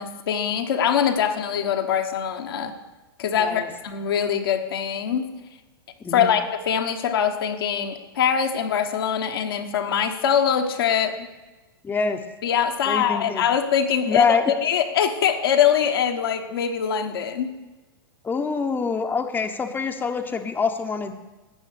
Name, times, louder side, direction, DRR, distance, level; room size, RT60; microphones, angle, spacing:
voice 1, 0.0-2.7 3.2-5.3 6.1-11.2 12.4-17.5, left 8 dB, 70° left, 4 dB, 1.2 m, -23 dB
voice 2, 6.0-6.4 11.8-12.2 12.9-13.5 14.1-14.5 18.2-21.1, left 5 dB, 15° left, 5 dB, 0.9 m, -25 dB
12.5 x 8.2 x 6.6 m, 1.2 s
hypercardioid pair, 105°, 13 cm